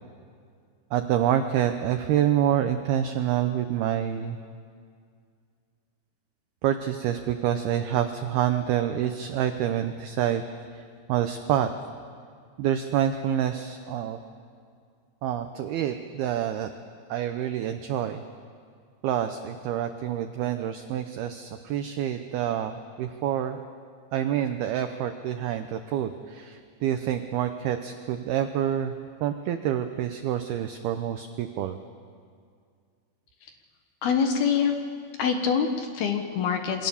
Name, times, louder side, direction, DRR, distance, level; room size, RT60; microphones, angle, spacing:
voice 1, 0.9-4.4 6.6-10.4 10.7-11.7 12.6-14.2 15.2-16.7 17.1-18.2 19.0-23.6 24.1-28.9 29.2-31.8, right 10 dB, 85° right, 8 dB, 2.2 m, -27 dB
voice 2, 34.0-34.7 35.2-36.9, left 6 dB, 65° left, 5 dB, 2.8 m, -25 dB
28.0 x 23.0 x 7.1 m, 2.2 s
omnidirectional pair, 5.6 m